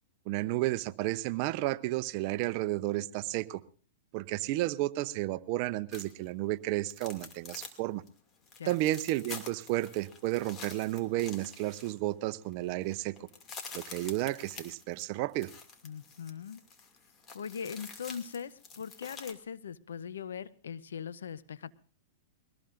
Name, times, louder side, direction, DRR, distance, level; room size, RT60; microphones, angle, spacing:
voice 1, 0.3-3.6 4.1-8.0 8.6-13.1 13.7-15.5, right 17 dB, 50° right, 15 dB, 0.7 m, -32 dB
sound 1, 5.9-6.3 6.8-7.8 8.1-8.2 8.4-12.2 12.5-12.6 12.8-19.3, left 5 dB, 25° left, 2.4 m, -48 dB
voice 2, 15.8-16.6 17.3-21.7, left 7 dB, 90° left, 16 dB, 0.7 m, -40 dB
22.5 x 18.5 x 2.6 m, 0.40 s
hypercardioid pair, 130°, 0 cm